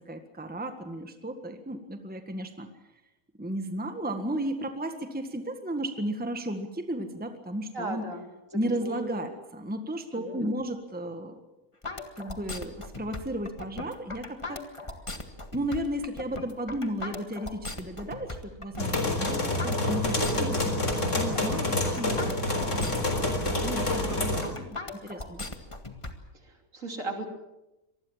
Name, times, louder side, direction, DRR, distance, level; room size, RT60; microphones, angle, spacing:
voice 1, 0.1-2.7 3.4-8.1 8.5-11.4 12.2-14.6 15.5-25.5, right 1 dB, 5° right, 7 dB, 1.6 m, -34 dB
voice 2, 7.7-8.2 8.5-9.3 10.1-10.5 26.4-27.3, right 2 dB, 60° right, 4 dB, 3.5 m, -37 dB
sound 1, 11.8-26.1, left 2 dB, 20° left, 1.8 m, -38 dB
sound 2, 18.8-24.4, left 2 dB, 55° left, 4.3 m, -27 dB
25.5 x 20.0 x 7.3 m, 0.99 s
omnidirectional pair, 1.5 m